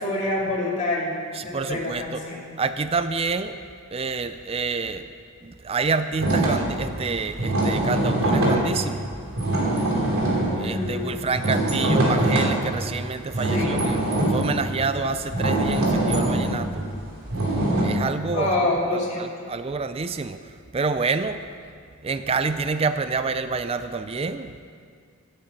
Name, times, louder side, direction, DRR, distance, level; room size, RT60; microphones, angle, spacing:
voice 1, 0.0-2.5 10.5-11.3 13.5-13.8 18.3-19.3, left 2 dB, 35° left, -5 dB, 2.5 m, -27 dB
voice 2, 1.3-2.0 2.6-3.6 3.9-5.1 5.4-9.1 10.6-14.0 14.3-16.9 17.8-18.5 19.2-21.4 22.0-24.6, right 4 dB, 25° right, 10 dB, 0.4 m, -27 dB
sound 1, 6.2-12.8 13.3-17.8, right 1 dB, 70° right, 3.2 m, -23 dB
11.5 x 9.1 x 8.3 m, 2.1 s
head